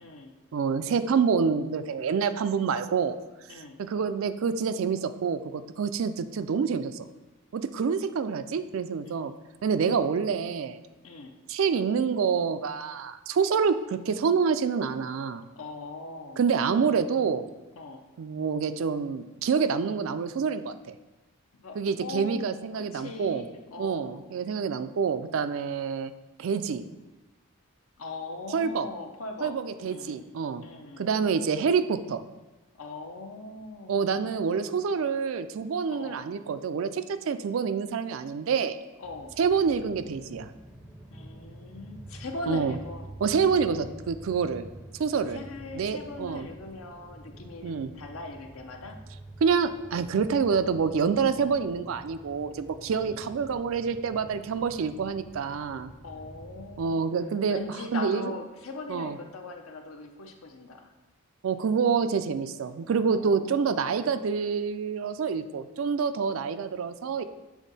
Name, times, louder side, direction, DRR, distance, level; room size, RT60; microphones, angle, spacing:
voice 1, 0.0-0.3 3.5-3.8 9.0-9.5 11.0-11.3 15.5-16.4 17.8-18.0 21.5-22.4 22.7-24.3 28.0-30.2 30.6-31.1 32.7-34.2 35.9-36.2 39.0-39.4 41.1-43.1 45.3-49.0 52.9-53.2 56.0-57.1 57.5-60.9 63.1-64.1, left 2 dB, 70° left, 4 dB, 0.7 m, -40 dB
voice 2, 0.5-3.2 3.8-7.1 7.5-9.3 9.6-10.8 11.5-15.4 16.4-17.4 18.2-20.9 21.8-23.4 23.8-26.1 26.4-26.8 28.5-28.9 29.4-30.6 31.0-32.2 33.9-38.8 39.4-40.5 42.5-42.8 43.2-44.7 45.0-45.4 45.7-46.4 47.6-47.9 49.4-55.9 56.8-57.6 57.9-58.3 58.9-59.2 61.4-67.2, right 6 dB, 65° right, 12 dB, 0.3 m, -27 dB
sound 1, 39.0-56.9, right 1 dB, 5° right, 0.5 m, -47 dB
7.2 x 3.6 x 4.0 m, 1.1 s
head